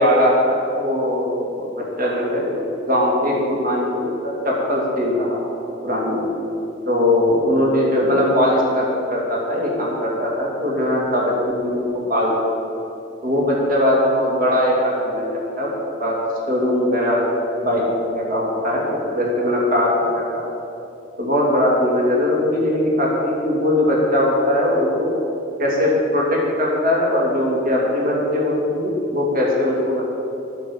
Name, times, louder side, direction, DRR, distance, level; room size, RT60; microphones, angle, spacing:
voice 1, 0.0-1.7 2.0-2.6 2.9-5.4 5.8-6.2 6.9-11.8 12.1-12.3 13.2-15.7 16.0-16.2 16.5-17.2 17.6-18.8 19.1-20.2 21.2-25.1 25.6-30.0, left 1 dB, 50° right, -3 dB, 2.6 m, -20 dB
9.7 x 6.7 x 8.7 m, 2.7 s
head